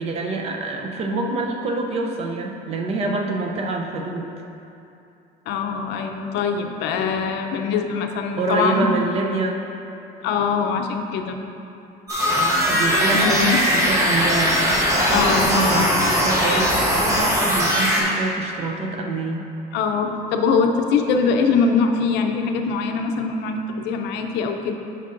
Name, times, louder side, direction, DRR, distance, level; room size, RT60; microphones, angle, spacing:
voice 1, 0.0-4.3 8.4-9.6 12.3-19.5, right 3 dB, 35° right, 2 dB, 0.5 m, -26 dB
voice 2, 5.5-8.9 10.2-11.4 13.1-13.6 15.1-15.9 19.7-24.7, left 5 dB, 75° left, 4 dB, 0.6 m, -22 dB
sound 1, 12.1-18.0, equal, 20° right, 1.0 m, -20 dB
9.3 x 5.4 x 2.5 m, 2.8 s
cardioid pair, 175°, 18 cm